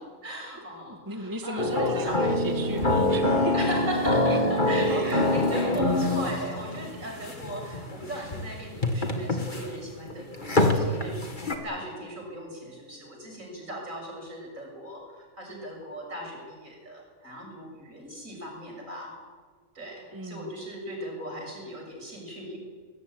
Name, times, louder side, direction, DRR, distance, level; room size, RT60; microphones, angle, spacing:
voice 1, 0.0-2.4 3.5-11.2 11.5-19.2 19.7-22.6, right 1 dB, 70° right, 1 dB, 7.5 m, -37 dB
voice 2, 0.6-3.5 4.2-4.4 4.8-5.9 6.9-7.3 20.1-20.5, right 2 dB, 15° right, 5 dB, 1.7 m, -36 dB
sound 1, 1.6-11.6, left 2 dB, 35° left, 2.6 m, -25 dB
21.0 x 20.5 x 9.9 m, 1.6 s
omnidirectional pair, 1.5 m